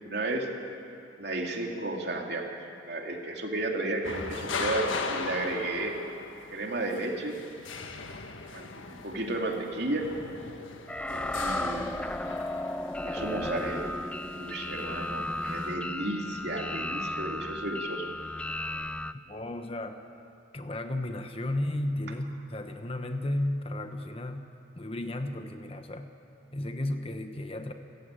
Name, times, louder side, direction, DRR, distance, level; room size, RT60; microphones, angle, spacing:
voice 1, 0.0-0.5 1.2-2.5 2.8-5.9 6.5-7.4 8.5-10.1 11.3-12.1 13.0-13.9 14.4-18.1, right 2 dB, 55° right, 1 dB, 3.0 m, -33 dB
sound 1, 4.0-15.7, left 4 dB, 90° left, 1.5 m, -39 dB
sound 2, 10.9-19.1, left 1 dB, 5° left, 0.5 m, -34 dB
voice 2, 19.3-20.0 20.5-24.5 24.8-26.1 26.5-27.7, left 1 dB, 30° left, 7 dB, 1.1 m, -33 dB
28.5 x 15.0 x 9.1 m, 2.5 s
head